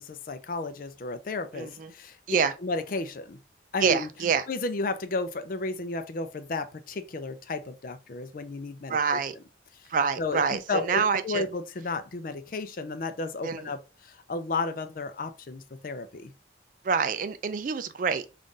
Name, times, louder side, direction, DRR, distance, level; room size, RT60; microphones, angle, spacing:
voice 1, 0.0-2.2 2.6-3.4 3.7-4.1 4.5-9.2 9.8-9.9 10.2-16.3, left 3 dB, 50° left, 0.4 m, -33 dB
voice 2, 1.5-1.9 2.3-2.5 3.8-4.5 8.9-9.4 9.9-11.4 13.4-13.7 16.8-18.3, right 6 dB, 45° right, 0.3 m, -26 dB
3.7 x 2.5 x 3.8 m
head